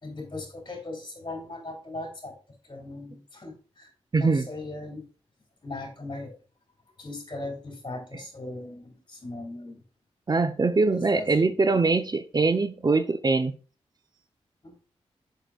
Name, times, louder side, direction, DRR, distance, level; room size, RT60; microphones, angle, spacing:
voice 1, 0.0-2.3 2.7-3.9 4.2-5.0 5.6-6.3 7.0-9.8 10.9-11.3 14.6-14.7, left 2 dB, 40° left, 3.2 m, -38 dB
voice 2, 4.1-4.5 10.3-13.5, right 3 dB, 35° right, 0.6 m, -23 dB
6.7 x 6.0 x 2.4 m
cardioid pair, 45°, 12 cm